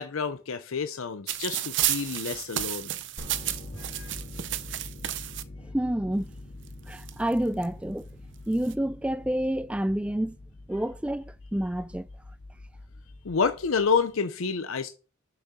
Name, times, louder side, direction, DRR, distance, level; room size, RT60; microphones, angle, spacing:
voice 1, 0.0-2.9 3.8-4.1 13.2-14.9, left 5 dB, 85° left, 0.7 m, -29 dB
sound 1, 1.3-5.4 6.3-6.4 6.7-7.6 8.4-8.7, right 13 dB, 60° right, 0.6 m, -32 dB
sound 2, 3.2-14.1, left 2 dB, 55° left, 1.5 m, -45 dB
voice 2, 5.7-6.3 6.9-8.1 8.5-10.4 10.7-12.1, right 1 dB, 5° right, 0.3 m, -28 dB
6.7 x 5.9 x 6.0 m
head